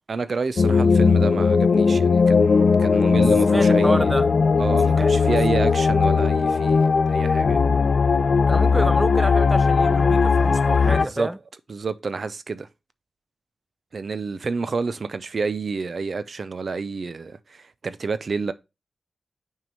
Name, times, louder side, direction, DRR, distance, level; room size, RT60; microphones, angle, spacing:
voice 1, 0.1-4.1 4.6-7.6 11.0-11.3 11.7-12.7 13.9-18.5, right 4 dB, 65° right, 0.5 m, -29 dB
sound 1, 0.6-11.1, left 5 dB, 70° left, 0.5 m, -18 dB
voice 2, 3.4-4.3 4.8-5.4 8.5-11.4, right 1 dB, 15° right, 0.7 m, -28 dB
6.0 x 4.6 x 5.2 m
cardioid pair, 50°, 0 cm